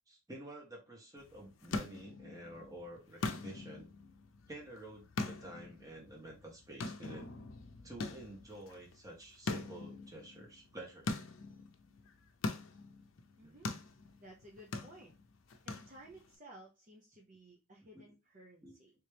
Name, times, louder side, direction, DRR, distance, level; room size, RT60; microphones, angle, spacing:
voice 1, 0.1-3.9 4.5-7.3 7.8-11.2 13.4-13.6 17.9-18.1 18.6-18.8, right 1 dB, 15° right, -1 dB, 1.2 m, -50 dB
sound 1, 1.2-16.3, left 3 dB, 75° left, 0.6 m, -43 dB
voice 2, 13.4-13.7 14.2-15.1 15.6-18.9, right 1 dB, 40° right, -1 dB, 0.6 m, -56 dB
3.4 x 2.9 x 3.3 m, 0.27 s
head